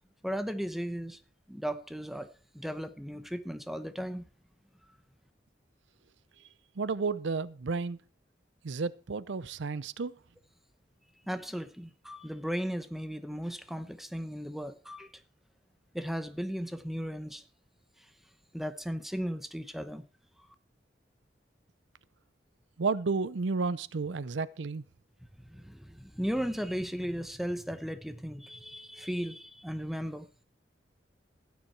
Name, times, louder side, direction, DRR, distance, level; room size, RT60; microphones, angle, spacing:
voice 1, 0.2-1.2 1.5-2.3 2.5-4.2 11.3-15.1 15.9-17.4 18.5-20.0 25.5-30.3, equal, ahead, 0.9 m, -36 dB
voice 2, 6.8-8.0 8.6-10.1 22.8-24.8, right 4 dB, 80° right, 0.6 m, -32 dB
15.5 x 9.5 x 4.6 m
head